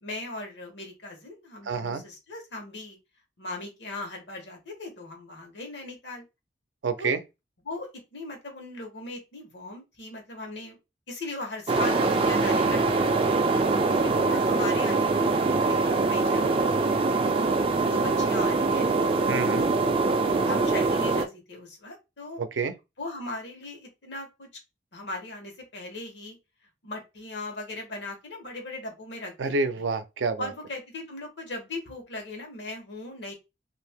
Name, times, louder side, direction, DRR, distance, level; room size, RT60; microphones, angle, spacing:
voice 1, 0.0-3.0 3.4-6.2 7.0-7.1 7.6-10.8 11.1-13.4 14.0-16.6 17.9-18.9 20.5-22.4 23.0-24.5 24.9-26.4 26.8-29.9 30.4-33.3, left 2 dB, 75° left, 1.1 m, -38 dB
voice 2, 1.7-2.0 6.8-7.2 19.3-19.7 22.4-22.7 29.4-30.4, right 4 dB, 90° right, 0.5 m, -28 dB
sound 1, 11.7-21.3, right 3 dB, 30° right, 0.3 m, -23 dB
2.7 x 2.5 x 3.5 m
head